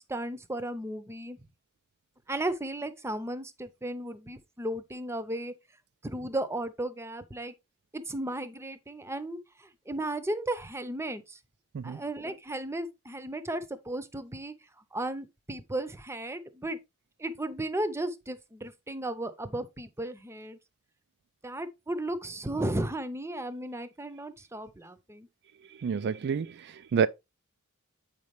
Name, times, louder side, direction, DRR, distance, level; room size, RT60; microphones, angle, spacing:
voice 1, 0.0-1.4 2.3-5.5 6.0-7.5 7.9-11.4 11.8-14.5 14.9-16.8 17.2-20.6 21.4-25.3, right 1 dB, 10° right, 0.7 m, -35 dB
voice 2, 25.6-27.1, right 6 dB, 50° right, 0.3 m, -29 dB
8.1 x 5.3 x 3.2 m
head